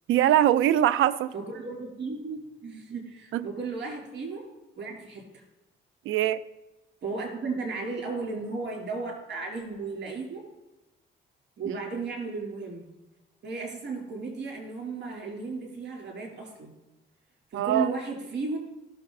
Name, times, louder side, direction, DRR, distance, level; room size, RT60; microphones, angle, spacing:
voice 1, 0.1-1.3 3.3-3.5 6.1-6.4 11.7-11.8 17.5-17.9, right 12 dB, 85° right, 16 dB, 0.5 m, -22 dB
voice 2, 1.3-4.5 4.8-5.4 7.0-10.4 11.6-12.9 13.4-16.7 17.5-18.6, right 4 dB, 60° right, 1 dB, 3.5 m, -34 dB
16.5 x 6.7 x 4.0 m, 1.1 s
cardioid pair, 90°, 20 cm